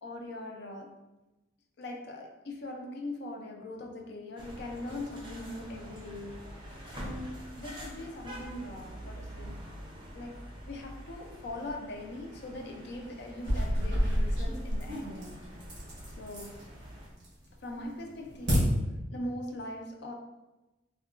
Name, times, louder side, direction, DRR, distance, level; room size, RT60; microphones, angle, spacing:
voice 1, 0.0-1.0 1.8-6.6 6.9-9.6 10.1-15.3 16.2-16.7 17.6-18.8 19.1-20.1, left 1 dB, 55° left, 2 dB, 0.4 m, -41 dB
sound 1, 4.4-17.1, equal, 25° right, 0.4 m, -46 dB
sound 2, 13.3-16.6 17.0-17.5 17.9-18.6, equal, 55° right, 1.1 m, -30 dB
3.6 x 2.2 x 2.4 m, 1.0 s
head